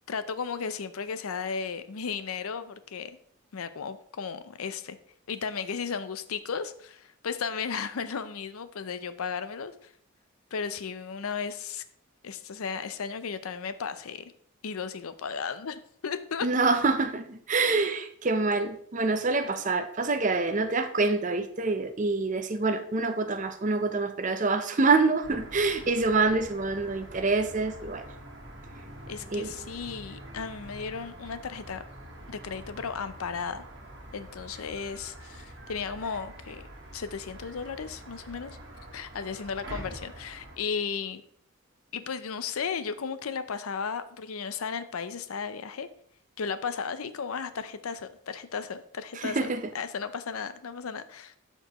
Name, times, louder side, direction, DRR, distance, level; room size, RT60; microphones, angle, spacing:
voice 1, 0.1-3.2 3.5-5.0 5.3-9.9 10.5-11.8 12.2-14.2 14.6-16.5 29.1-31.8 32.3-33.6 34.1-36.6 36.9-38.6 38.9-41.2 41.9-45.9 46.4-51.4, left 6 dB, 85° left, 0.5 m, -35 dB
voice 2, 16.4-28.0 29.3-29.5 49.2-49.6, right 3 dB, 35° right, 0.6 m, -26 dB
sound 1, 25.2-40.6, right 1 dB, 55° right, 1.4 m, -45 dB
12.5 x 4.5 x 3.0 m
head